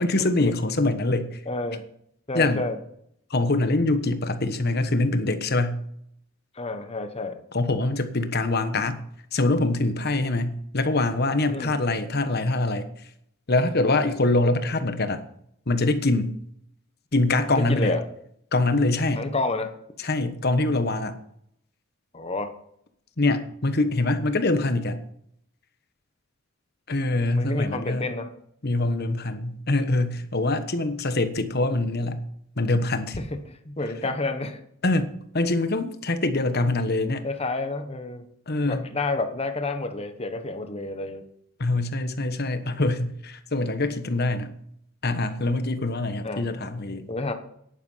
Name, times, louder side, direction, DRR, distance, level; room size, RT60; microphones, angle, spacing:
voice 1, 0.0-1.4 2.3-2.7 3.3-5.8 7.5-9.0 9.3-12.9 13.5-15.2 15.7-16.3 17.1-17.9 18.5-19.3 20.0-21.2 23.2-25.0 26.9-28.1 28.6-32.2 32.6-33.2 34.8-37.2 38.5-38.8 41.6-44.5 45.0-47.1, left 2 dB, 50° left, 9 dB, 1.2 m, -24 dB
voice 2, 1.5-1.9 2.3-2.8 6.5-7.4 11.5-11.7 17.5-18.0 19.2-19.7 22.1-22.5 27.2-28.3 33.2-33.4 33.6-34.6 37.2-38.2 38.7-41.2 46.2-46.4 47.1-47.3, left 2 dB, 30° left, 8 dB, 1.2 m, -29 dB
10.5 x 9.9 x 5.7 m, 0.70 s
head